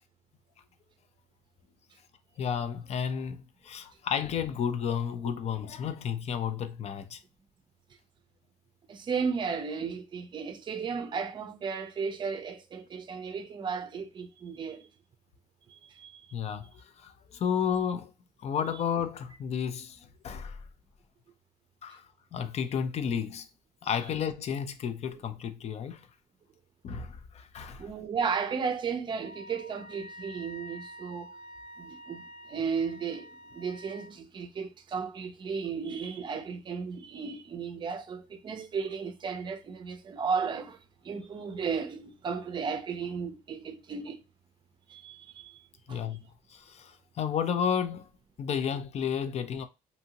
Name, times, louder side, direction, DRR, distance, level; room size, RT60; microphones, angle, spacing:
voice 1, 2.4-7.2 16.3-18.1 18.4-20.6 21.8-22.0 22.3-23.5 23.8-26.1 26.8-27.9 45.9-46.2 46.5-48.1 48.4-49.6, left 7 dB, 45° left, 0.5 m, -32 dB
voice 2, 8.9-14.9 15.7-16.3 27.8-31.4 31.8-44.2 44.9-45.6 45.9-46.0, right 5 dB, 35° right, 0.5 m, -34 dB
Wind instrument woodwind instrument, 29.2-34.1, equal, 85° left, 1.3 m, -48 dB
2.7 x 2.6 x 2.8 m
cardioid pair, 120°, 15 cm